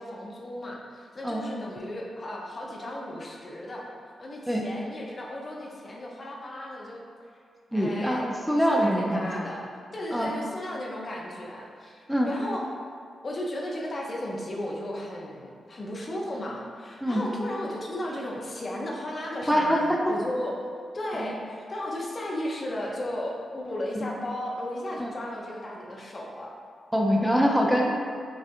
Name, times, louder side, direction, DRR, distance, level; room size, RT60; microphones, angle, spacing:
voice 1, 0.0-3.9 4.2-7.0 7.7-8.3 8.6-12.7 13.2-20.6 20.9-26.6, left 1 dB, 45° left, -2 dB, 0.6 m, -35 dB
voice 2, 7.7-9.3 10.1-10.3 12.1-12.3 17.0-17.2 19.5-19.8 21.1-21.3 24.0-24.1 25.0-25.1 26.9-27.9, equal, 5° right, -1 dB, 0.5 m, -24 dB
5.3 x 2.3 x 2.5 m, 2.2 s
supercardioid pair, 40°, 0 cm